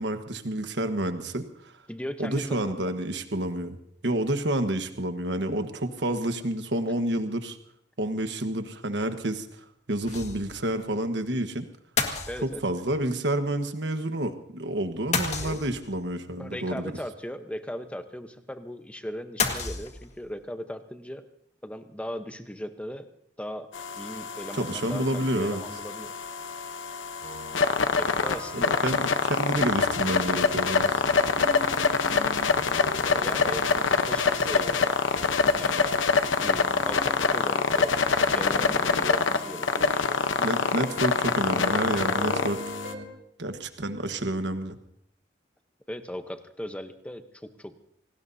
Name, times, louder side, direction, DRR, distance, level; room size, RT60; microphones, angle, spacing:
voice 1, 0.0-1.7 2.2-3.8 4.0-7.6 8.0-9.6 9.9-11.7 12.4-16.9 24.6-25.6 28.8-31.0 40.4-42.6 43.4-44.8, right 1 dB, 65° right, 8 dB, 1.3 m, -29 dB
voice 2, 1.9-2.9 12.3-12.6 15.4-15.6 16.4-21.3 21.6-23.1 23.4-23.7 24.0-26.1 28.0-28.8 33.2-34.9 35.6-35.9 36.4-38.0 38.3-40.3 45.9-47.7, equal, 5° left, 8 dB, 0.9 m, -38 dB
sound 1, 10.1-10.6 10.9-11.0 12.0-12.9 15.1-16.0 19.4-20.3, left 5 dB, 35° left, 1.7 m, -30 dB
sound 2, 23.7-42.9, left 5 dB, 85° left, 0.9 m, -25 dB
sound 3, 27.2-43.1, right 1 dB, 85° right, 3.4 m, -41 dB
27.0 x 19.0 x 2.7 m, 0.72 s
head